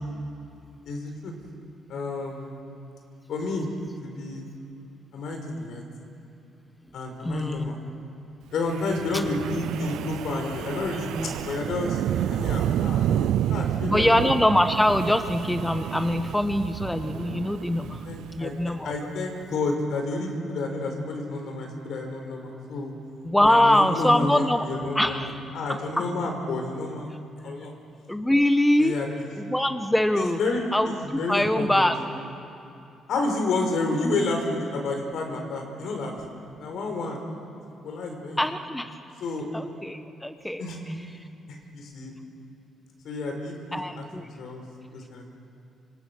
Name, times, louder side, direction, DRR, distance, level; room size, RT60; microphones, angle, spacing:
voice 1, 0.9-1.3 1.9-2.5 3.3-3.7 4.0-4.5 5.1-5.8 6.9-7.8 8.5-12.0 12.3-14.2 18.1-18.5 18.8-22.9 23.5-25.3 25.5-27.1 27.4-27.7 28.8-29.3 30.1-31.9 33.1-36.1 36.6-37.3 37.8-38.4 39.2-39.5 40.6-40.8 41.5-42.1 43.0-44.6 44.9-45.3, left 2 dB, 70° left, 3 dB, 5.3 m, -30 dB
voice 2, 7.2-7.7 9.1-9.2 13.8-18.0 18.3-18.9 23.2-24.7 24.9-25.4 26.0-26.1 28.1-29.0 29.4-30.4 30.7-32.0 38.4-39.0 39.5-40.6 41.1-41.2 43.7-44.3, left 1 dB, 5° left, 8 dB, 1.2 m, -23 dB
Wind, 8.7-19.0, right 11 dB, 80° right, 0.5 m, -30 dB
26.0 x 25.5 x 6.4 m, 2.7 s
cardioid pair, 90°, 0 cm